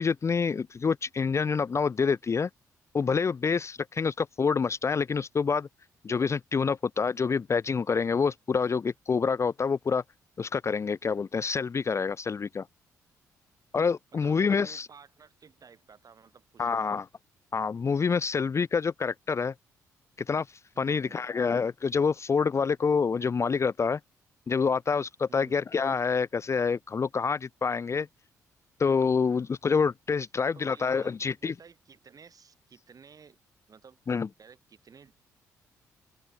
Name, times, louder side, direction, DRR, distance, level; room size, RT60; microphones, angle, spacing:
voice 1, 0.0-2.5 2.9-5.7 6.0-10.0 10.4-12.7 13.7-14.9 16.6-17.0 17.5-19.5 20.3-20.5 20.8-24.0 24.5-28.1 28.8-31.5 34.1-34.3, left 5 dB, 35° left, 0.5 m, -27 dB
voice 2, 14.1-17.0 20.7-21.3 25.3-25.6 30.5-33.4 33.7-34.0 34.4-35.1, right 6 dB, 45° right, 7.7 m, -53 dB
hypercardioid pair, 45°, 8 cm